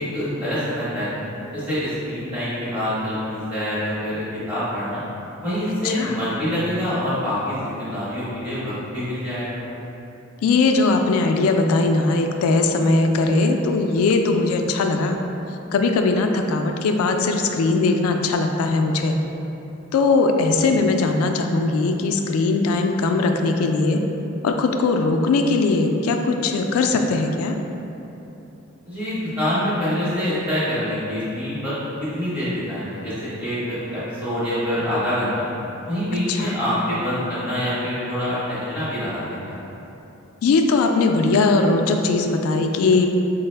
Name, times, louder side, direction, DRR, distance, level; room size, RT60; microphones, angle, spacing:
voice 1, 0.0-5.0 5.4-9.6 28.9-31.7 32.0-35.5 35.8-39.6, equal, 10° right, -13 dB, 0.9 m, -26 dB
voice 2, 5.8-6.2 10.4-15.2 15.7-19.2 19.9-24.0 24.4-27.6 36.3-36.6 40.4-43.1, left 3 dB, 85° left, 8 dB, 0.3 m, -20 dB
4.5 x 2.0 x 3.2 m, 3.0 s
head